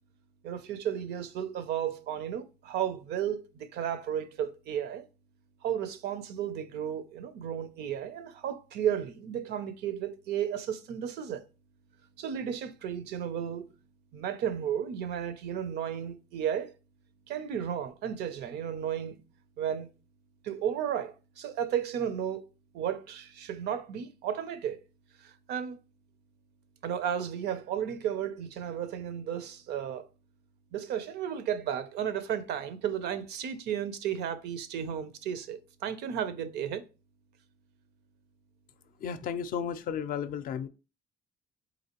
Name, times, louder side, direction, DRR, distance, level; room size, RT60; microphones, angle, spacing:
voice 1, 0.4-5.0 5.6-11.5 12.2-13.7 14.1-16.7 17.3-19.2 19.6-19.9 20.4-22.5 22.7-24.8 25.2-25.8 26.8-30.1 30.7-36.8, right 9 dB, 75° right, 0.5 m, -33 dB
voice 2, 39.0-40.7, left 8 dB, 55° left, 0.4 m, -33 dB
4.0 x 3.0 x 2.9 m
cardioid pair, 110°, 17 cm